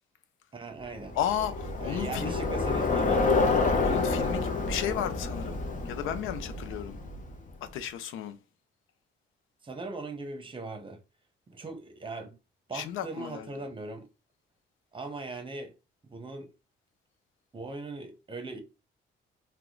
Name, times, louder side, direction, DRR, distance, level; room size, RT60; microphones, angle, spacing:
voice 1, 0.5-1.2 1.8-3.6 9.6-11.0 11.5-12.3 12.7-14.0 14.9-15.7 16.1-16.5 17.5-18.6, right 3 dB, 25° right, 0.9 m, -39 dB
Bicycle, 1.0-7.5, left 3 dB, 40° left, 0.8 m, -28 dB
voice 2, 1.1-2.4 3.8-7.0 7.6-8.4 12.7-13.5, left 10 dB, 85° left, 0.5 m, -34 dB
2.8 x 2.2 x 3.7 m
cardioid pair, 90°, 20 cm